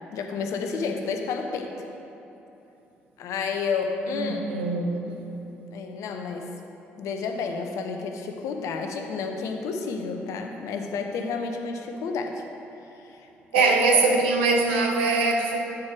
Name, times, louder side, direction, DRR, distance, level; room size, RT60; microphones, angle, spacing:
voice 1, 0.1-1.7 3.2-4.5 5.7-6.5 7.0-12.4 13.0-13.3 13.5-14.0, left 5 dB, 60° left, 4 dB, 0.7 m, -30 dB
voice 2, 4.1-5.2 13.5-15.6, right 3 dB, 75° right, 1 dB, 0.7 m, -22 dB
8.5 x 4.5 x 4.7 m, 2.9 s
figure-of-eight pair, 45°, 6 cm